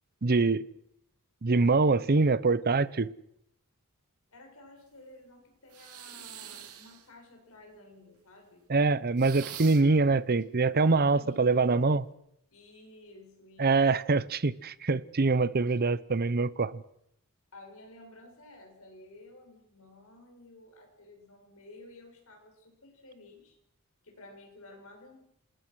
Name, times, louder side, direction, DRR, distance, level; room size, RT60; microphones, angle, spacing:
voice 1, 0.2-0.6 1.4-3.1 8.7-12.0 13.6-16.7, right 3 dB, 45° right, 18 dB, 0.8 m, -24 dB
voice 2, 4.3-8.7 11.0-12.0 12.5-13.8 17.5-23.6 24.0-25.2, left 2 dB, 65° left, 2 dB, 6.9 m, -53 dB
sound 1, 5.7-7.1 9.2-10.0, right 10 dB, 75° right, 2.6 m, -44 dB
27.0 x 20.0 x 6.3 m, 0.76 s
head